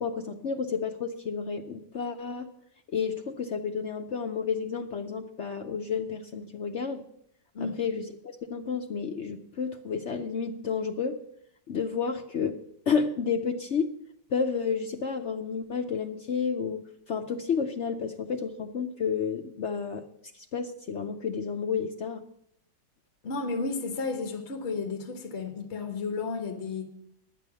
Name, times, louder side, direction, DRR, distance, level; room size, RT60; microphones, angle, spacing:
voice 1, 0.0-2.5 2.9-7.0 7.6-11.2 11.7-12.6 12.9-13.9 14.3-20.0 20.3-22.2, left 6 dB, 65° left, 0.7 m, -31 dB
voice 2, 23.2-26.9, left 4 dB, 40° left, 1.6 m, -32 dB
11.0 x 9.8 x 6.9 m
omnidirectional pair, 2.0 m